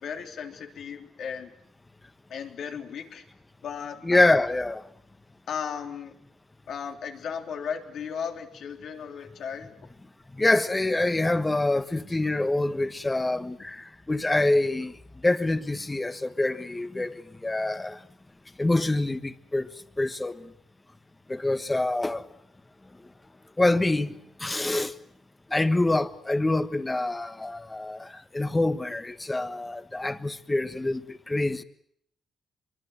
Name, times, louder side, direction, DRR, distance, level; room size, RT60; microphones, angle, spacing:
voice 1, 0.0-1.5 2.3-3.2 3.6-4.4 5.5-6.1 6.7-9.8 12.1-12.2, left 7 dB, 70° left, 3.4 m, -36 dB
voice 2, 4.0-4.8 10.4-14.9 15.2-17.1 17.4-18.0 18.6-19.7 20.0-20.4 21.3-22.2 23.6-24.1 24.4-24.9 25.5-28.1 28.3-31.0 31.3-31.6, left 2 dB, 15° left, 1.4 m, -25 dB
25.5 x 23.5 x 8.0 m
cardioid pair, 110°, 0 cm